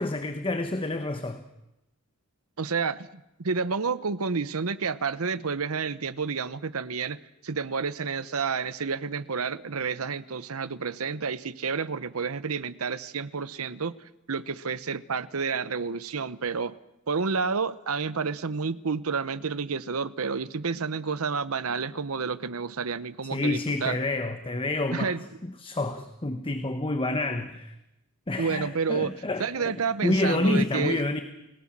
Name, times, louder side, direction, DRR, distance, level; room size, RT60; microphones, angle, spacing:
voice 1, 0.0-1.4 23.3-25.2 25.4-27.7 28.3-31.2, left 2 dB, 25° left, 8 dB, 1.2 m, -28 dB
voice 2, 2.6-7.2 7.4-13.9 14.3-16.8 17.1-24.0 24.9-25.2 28.4-31.0, right 5 dB, 75° right, 15 dB, 0.9 m, -30 dB
29.5 x 17.5 x 7.5 m, 0.91 s
head